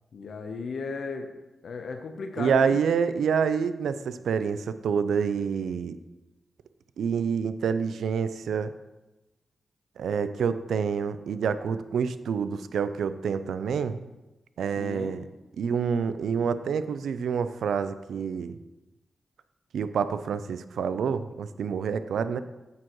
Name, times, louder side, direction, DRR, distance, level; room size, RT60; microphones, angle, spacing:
voice 1, 0.1-1.3 1.6-2.8 14.8-15.2, left 4 dB, 75° left, 5 dB, 0.8 m, -35 dB
voice 2, 2.4-6.0 7.0-8.7 10.0-14.1 14.6-15.3 15.6-18.6 19.7-22.4, right 6 dB, 85° right, 12 dB, 0.4 m, -27 dB
9.2 x 8.5 x 3.1 m, 1.0 s
cardioid pair, 50°, 0 cm